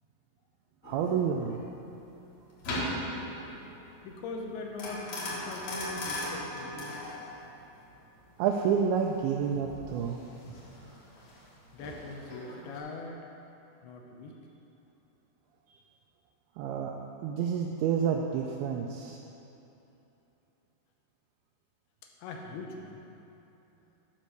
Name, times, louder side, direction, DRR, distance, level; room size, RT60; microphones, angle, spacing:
sound 1, 0.8-12.8, left 1 dB, 55° left, 2.4 m, -39 dB
voice 1, 0.8-1.6 8.4-10.2 16.6-17.0 17.2-19.2, right 7 dB, 80° right, 1 dB, 2.3 m, -29 dB
voice 2, 4.0-7.0 11.7-13.2 13.8-14.4 22.2-23.1, left 3 dB, 75° left, 1 dB, 2.7 m, -41 dB
10.5 x 5.5 x 6.7 m, 2.9 s
omnidirectional pair, 4.9 m